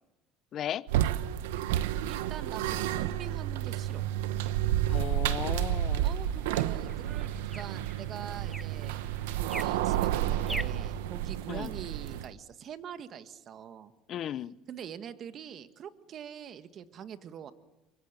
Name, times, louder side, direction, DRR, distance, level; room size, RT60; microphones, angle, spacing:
voice 1, 0.5-0.9 4.9-6.1 11.5-11.7 14.1-14.6, left 10 dB, 55° left, 18 dB, 0.9 m, -36 dB
sound 1, 0.9-12.3, right 12 dB, 90° right, 1.0 m, -30 dB
voice 2, 2.0-4.0 6.0-9.0 9.5-13.9 14.7-17.5, right 8 dB, 50° right, 10 dB, 1.7 m, -44 dB
sound 2, 4.2-10.9, equal, ahead, 0.9 m, -46 dB
24.5 x 24.0 x 9.0 m, 0.99 s
supercardioid pair, 90°, 0 cm